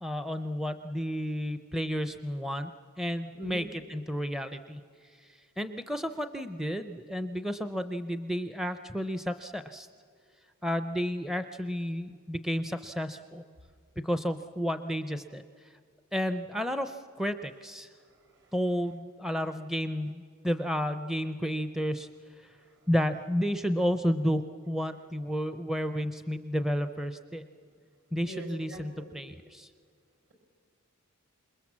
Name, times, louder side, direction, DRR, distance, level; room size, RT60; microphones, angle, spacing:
voice 1, 0.0-2.7 3.0-9.9 10.6-13.4 14.0-15.8 16.1-17.9 18.5-22.6 22.9-27.5 28.1-29.7, equal, ahead, 9 dB, 0.5 m, -32 dB
voice 2, 3.3-3.7 18.0-18.5 22.6-22.7 28.2-29.2, right 1 dB, 55° right, 5 dB, 5.2 m, -44 dB
27.5 x 21.0 x 7.4 m, 2.2 s
head